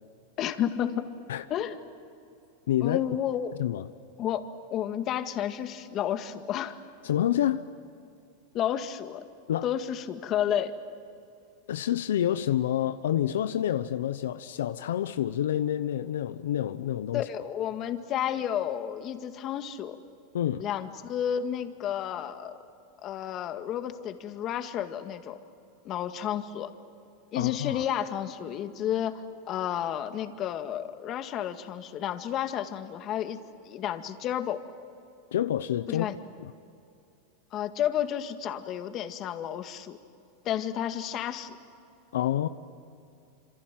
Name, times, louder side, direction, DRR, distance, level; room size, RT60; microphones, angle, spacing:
voice 1, 0.4-1.1 1.5-1.8 2.8-3.5 4.2-6.8 8.5-9.2 9.6-10.7 17.1-20.0 20.6-22.5 23.0-25.4 25.8-26.7 27.3-34.6 35.9-36.2 37.5-40.0 40.4-41.6, left 10 dB, 40° left, 2.0 m, -31 dB
voice 2, 2.7-3.0 3.6-3.9 7.0-7.7 9.5-9.7 11.7-17.2 20.3-20.7 27.3-27.8 35.3-36.1 36.4-36.5 42.1-42.5, left 11 dB, 85° left, 0.8 m, -28 dB
27.5 x 27.0 x 7.7 m
supercardioid pair, 125°, 0 cm